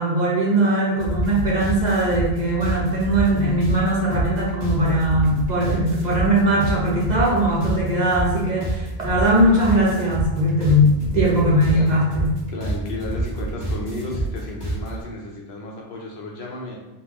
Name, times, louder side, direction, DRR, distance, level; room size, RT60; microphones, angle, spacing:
voice 1, 0.0-12.3, right 1 dB, 45° right, -5 dB, 0.9 m, -20 dB
sound 1, 1.0-15.0, right 2 dB, 35° left, 1.5 m, -28 dB
voice 2, 12.5-16.8, left 2 dB, 80° left, -2 dB, 1.0 m, -33 dB
3.7 x 2.5 x 3.0 m, 1.0 s
omnidirectional pair, 1.1 m